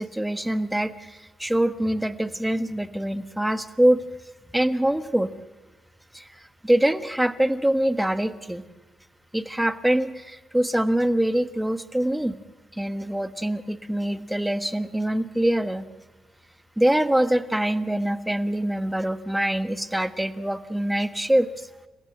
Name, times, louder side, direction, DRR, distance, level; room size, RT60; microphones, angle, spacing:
voice 1, 0.0-4.0 4.5-5.3 6.1-6.3 6.6-8.6 9.3-12.4 12.7-15.8 16.8-21.7, right 1 dB, 5° right, 10 dB, 1.3 m, -24 dB
30.0 x 15.0 x 7.8 m, 1.2 s
cardioid pair, 90°, 0 cm